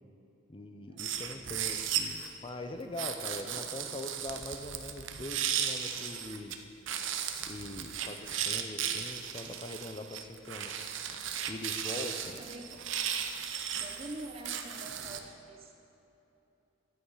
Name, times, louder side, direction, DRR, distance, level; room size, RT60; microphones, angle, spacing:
voice 1, 0.5-6.5 7.5-10.9 11.5-12.4, left 1 dB, 25° left, 6 dB, 0.6 m, -42 dB
sound 1, 1.0-2.3 3.0-6.6 6.9-15.2, right 9 dB, 65° right, 0.7 m, -36 dB
voice 2, 1.4-1.8 3.3-3.6 8.7-9.1 12.4-12.8 13.8-15.7, right 1 dB, 30° right, 3 dB, 0.8 m, -47 dB
11.0 x 8.9 x 4.8 m, 3.0 s
head